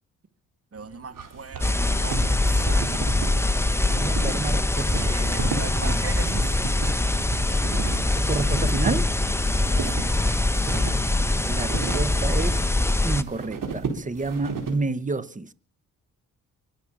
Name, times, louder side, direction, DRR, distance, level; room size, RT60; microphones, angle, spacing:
voice 1, 0.7-2.8 3.1-3.5 5.0-6.6 9.8-10.2, right 5 dB, 40° right, 2.0 m, -39 dB
sound 1, 0.8-14.8, right 5 dB, 65° right, 4.5 m, -35 dB
sound 2, 1.6-13.2, left 2 dB, 5° left, 1.1 m, -23 dB
voice 2, 4.0-6.0 8.1-9.1 11.4-12.6 13.0-15.5, right 3 dB, 20° right, 1.1 m, -30 dB
23.5 x 8.0 x 7.2 m
cardioid pair, 70°, 35 cm